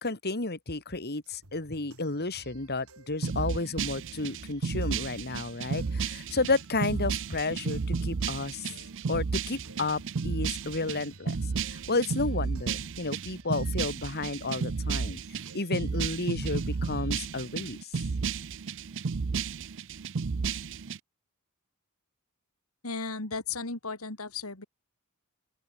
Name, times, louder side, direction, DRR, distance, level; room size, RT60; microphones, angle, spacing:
voice 1, 0.0-8.7 9.1-11.4 11.7-17.9, left 3 dB, 50° left, 2.9 m, -32 dB
sound 1, 1.2-17.7, right 2 dB, 80° right, 7.1 m, -56 dB
sound 2, 3.2-21.0, right 5 dB, 60° right, 0.6 m, -32 dB
voice 2, 22.8-24.6, left 4 dB, 85° left, 3.1 m, -35 dB
open air
head